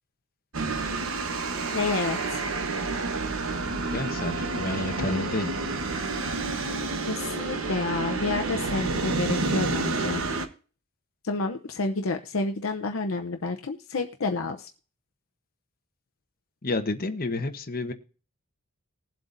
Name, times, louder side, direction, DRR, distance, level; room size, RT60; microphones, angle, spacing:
sound 1, 0.5-10.5, right 3 dB, 65° right, 1.2 m, -29 dB
voice 1, 1.7-2.5 7.1-10.2 11.2-14.7, left 3 dB, 65° left, 4 dB, 0.7 m, -29 dB
voice 2, 3.9-5.5 16.6-17.9, left 2 dB, 45° left, 6 dB, 1.1 m, -30 dB
20.5 x 7.7 x 2.6 m, 0.38 s
head